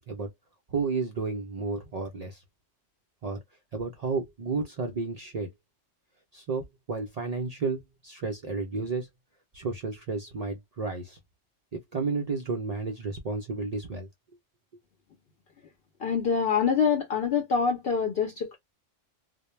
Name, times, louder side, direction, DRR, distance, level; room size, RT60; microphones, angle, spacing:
voice 1, 0.7-2.4 3.2-3.4 3.7-5.5 6.3-9.1 9.5-11.2 11.7-14.1, right 4 dB, 75° right, 0.3 m, -32 dB
voice 2, 16.0-18.6, left 6 dB, 60° left, 0.7 m, -25 dB
2.1 x 2.1 x 3.0 m
omnidirectional pair, 1.3 m